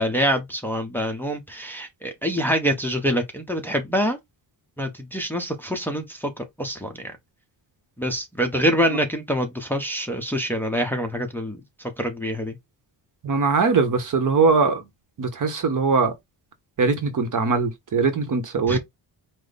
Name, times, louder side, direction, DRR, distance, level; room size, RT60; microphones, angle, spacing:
voice 1, 0.0-4.2 4.8-7.1 8.0-12.5 18.7-18.8, equal, 5° left, 0.7 m, -25 dB
voice 2, 13.2-14.8 15.2-16.2 16.8-18.8, right 4 dB, 40° right, 0.9 m, -21 dB
5.0 x 2.1 x 3.9 m
wide cardioid pair, 155°, 46 cm